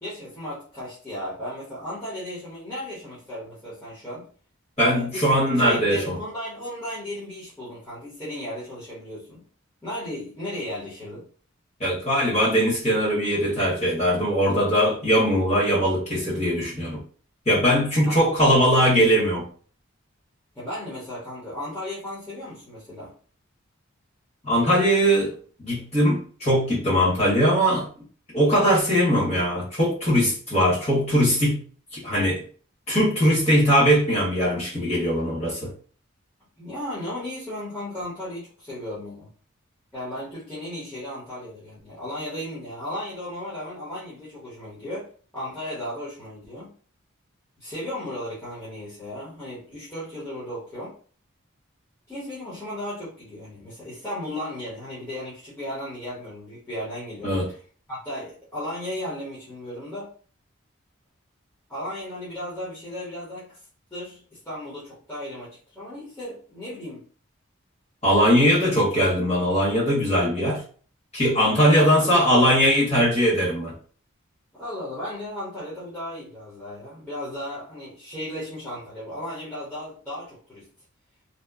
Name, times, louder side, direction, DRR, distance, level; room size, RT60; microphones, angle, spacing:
voice 1, 0.0-4.2 4.9-9.4 9.8-11.3 18.0-18.2 20.5-23.1 36.6-39.3 39.9-45.1 45.3-46.7 47.6-50.9 52.1-57.6 57.9-60.1 61.7-63.6 63.9-67.0 71.8-72.3 74.5-80.7, left 1 dB, 10° left, -10 dB, 0.8 m, -35 dB
voice 2, 4.8-6.1 11.8-17.0 17.4-19.5 24.4-27.9 28.3-31.6 31.9-32.4 32.9-35.7 57.2-57.5 68.0-70.6 71.1-73.7, equal, 30° left, -6 dB, 1.2 m, -20 dB
2.8 x 2.0 x 2.3 m, 0.42 s
head